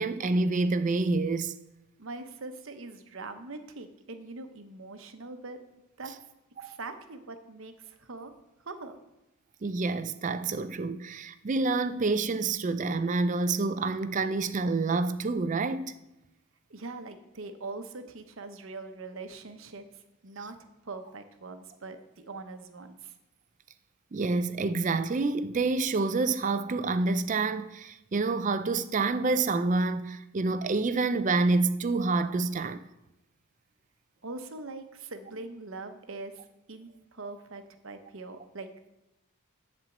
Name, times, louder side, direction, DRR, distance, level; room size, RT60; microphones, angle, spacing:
voice 1, 0.0-1.6 6.6-6.8 9.6-15.9 24.1-32.8, right 3 dB, 35° right, 0.4 m, -28 dB
voice 2, 2.0-5.6 6.0-6.1 6.6-8.3 8.6-9.0 16.7-19.8 20.2-20.6 20.8-23.1 34.2-36.4 36.7-38.9, right 3 dB, 60° right, 0.9 m, -42 dB
11.0 x 4.4 x 7.2 m
head